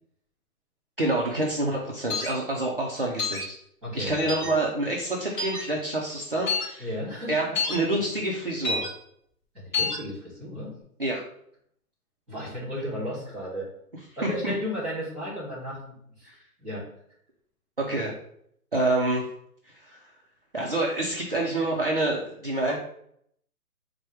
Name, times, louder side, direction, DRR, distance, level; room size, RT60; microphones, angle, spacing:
voice 1, 1.0-3.6 3.9-6.9 7.3-8.8 11.0-11.2 14.2-14.5 16.2-16.4 17.8-18.1 18.7-19.3 19.7-20.0 20.5-22.8, right 2 dB, 40° right, -2 dB, 0.5 m, -27 dB
sound 1, 2.1-2.3 3.2-3.4 4.3-4.5 5.4-5.6 6.5-6.7 7.5-7.8 8.6-8.9 9.7-10.0, left 4 dB, 30° left, 1.6 m, -27 dB
voice 2, 3.8-4.5 6.8-7.3 9.5-10.7 12.3-13.7 14.2-16.3 16.6-16.8, equal, 5° right, -11 dB, 1.1 m, -34 dB
4.4 x 2.2 x 4.6 m, 0.69 s
hypercardioid pair, 180°, 45 cm